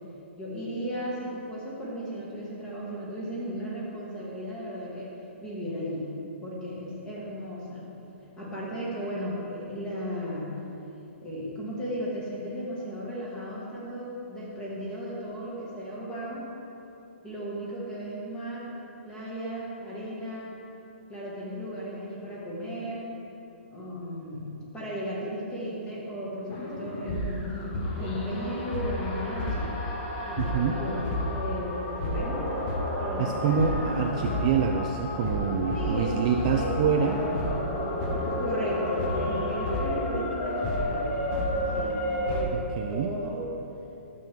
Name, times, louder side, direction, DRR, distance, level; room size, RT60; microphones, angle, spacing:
voice 1, 0.4-5.1 5.4-6.1 6.4-7.9 8.4-10.5 11.2-16.4 17.2-18.8 19.0-20.5 21.1-23.1 23.7-29.7 30.3-32.4 33.0-34.5 35.7-36.2 36.5-36.8 38.4-41.2 41.5-42.6 42.9-43.5, equal, 10° left, -6 dB, 1.9 m, -35 dB
sound 1, 26.5-42.4, left 1 dB, 25° left, 1.2 m, -30 dB
voice 2, 30.4-30.8 33.2-37.2 42.5-43.1, right 6 dB, 30° right, 2 dB, 0.4 m, -26 dB
11.5 x 7.5 x 3.7 m, 2.8 s
hypercardioid pair, 165°, 7 cm